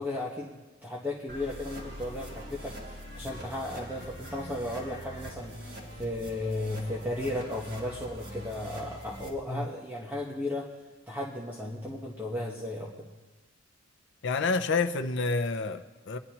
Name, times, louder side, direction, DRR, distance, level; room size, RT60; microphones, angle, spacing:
voice 1, 0.0-10.7 11.1-13.1, left 1 dB, 10° right, 1.2 m, -35 dB
sound 1, 1.3-9.3, equal, 55° right, 3.2 m, -43 dB
voice 2, 14.2-16.2, left 4 dB, 60° left, 0.7 m, -28 dB
22.0 x 11.0 x 2.9 m
head